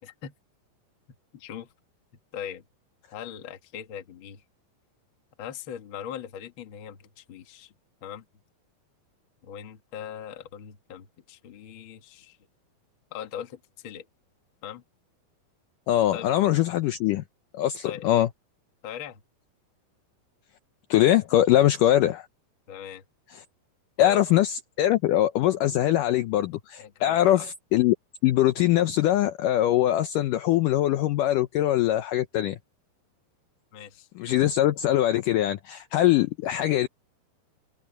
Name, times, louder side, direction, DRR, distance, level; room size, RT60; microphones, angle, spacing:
voice 1, 0.0-0.3 1.3-1.7 2.3-2.6 3.1-4.4 5.4-7.7 8.0-8.2 9.4-12.4 13.1-14.0 14.6-14.8 16.1-16.3 17.8-18.1 18.8-19.2 21.5-21.7 22.7-23.0 24.0-24.3 26.8-27.4 33.7-34.1, left 9 dB, 55° left, 1.4 m, -40 dB
voice 2, 15.9-17.2 17.5-18.3 20.9-22.3 24.0-28.0 28.2-32.6 34.2-36.9, left 13 dB, 85° left, 1.9 m, -22 dB
omnidirectional pair, 4.7 m